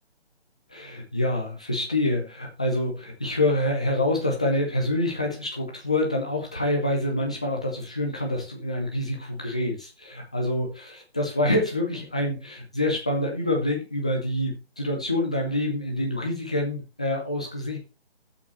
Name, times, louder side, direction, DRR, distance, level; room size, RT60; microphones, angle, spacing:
voice 1, 0.7-17.8, left 1 dB, 5° left, 1 dB, 0.5 m, -26 dB
12.5 x 7.4 x 3.2 m, 0.30 s
figure-of-eight pair, 150°, 32 cm